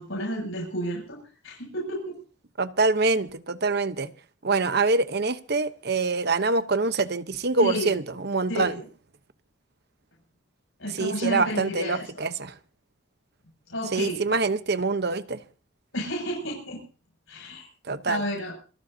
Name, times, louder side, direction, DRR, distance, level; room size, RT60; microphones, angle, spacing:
voice 1, 0.0-2.1 7.6-8.0 8.5-8.9 10.8-12.3 13.7-14.2 15.9-16.8 17.3-17.7 18.1-18.5, equal, 85° left, 7.3 m, -31 dB
voice 2, 2.6-4.1 4.4-8.7 10.9-12.5 13.9-15.4 17.9-18.2, right 3 dB, 55° right, 1.0 m, -25 dB
28.0 x 13.0 x 2.8 m
head